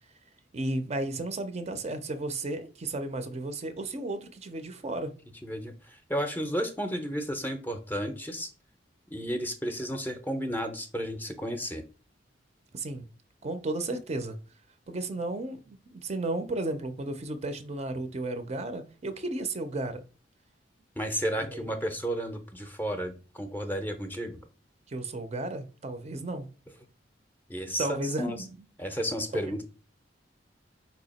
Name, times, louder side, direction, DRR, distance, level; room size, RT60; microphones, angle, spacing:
voice 1, 0.5-5.1 12.7-13.0 13.4-14.4 14.9-20.0 21.5-21.7 24.9-26.5 27.8-28.7 29.5-29.6, right 2 dB, 35° right, 0.5 m, -33 dB
voice 2, 5.4-8.5 9.1-11.8 21.0-24.4 27.5-28.4 28.8-29.6, equal, 10° left, 0.5 m, -33 dB
4.6 x 2.8 x 4.1 m
head